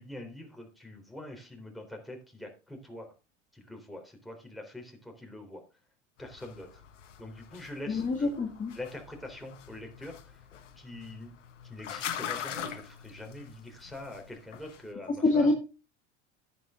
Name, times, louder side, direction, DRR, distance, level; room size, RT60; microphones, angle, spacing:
voice 1, 0.0-3.1 3.5-5.6 6.2-6.8 7.2-8.3 8.7-10.5 10.8-11.3 11.6-15.5, left 1 dB, ahead, 1 dB, 3.8 m, -44 dB
sound 1, 6.2-14.9, left 9 dB, 85° left, 1.4 m, -43 dB
voice 2, 7.9-8.7 15.2-15.5, left 3 dB, 20° left, 2 dB, 2.1 m, -25 dB
10.5 x 9.7 x 3.8 m, 0.30 s
hypercardioid pair, 85°, 35 cm